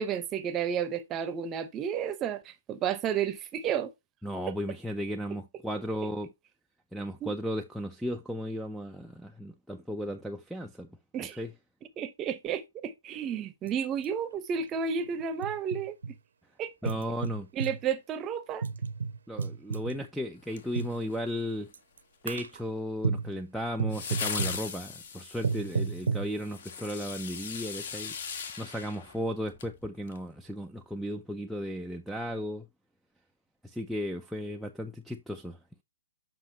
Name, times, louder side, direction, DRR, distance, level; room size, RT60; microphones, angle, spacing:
voice 1, 0.0-3.9 4.5-4.6 7.2-7.3 11.1-11.4 12.0-15.9 16.6-16.9 17.5-18.6, right 7 dB, 20° right, 0.8 m, -32 dB
voice 2, 4.2-6.3 6.9-10.9 11.4-11.5 16.8-17.5 19.3-21.7 22.2-28.2 28.6-32.7 33.6-35.6, equal, ahead, 0.4 m, -35 dB
sound 1, 13.7-13.8 14.0-14.1 15.0-16.1 16.9-17.8 18.6-20.0 20.7-21.0 21.7-22.0 22.3-22.6 23.0-23.3 23.8-24.6 25.4-26.3, right 5 dB, 90° right, 0.9 m, -32 dB
sound 2, 20.5-21.4 23.9-29.7 30.1-30.2, left 6 dB, 50° left, 1.6 m, -39 dB
7.5 x 5.8 x 2.8 m
hypercardioid pair, 165°, 0 cm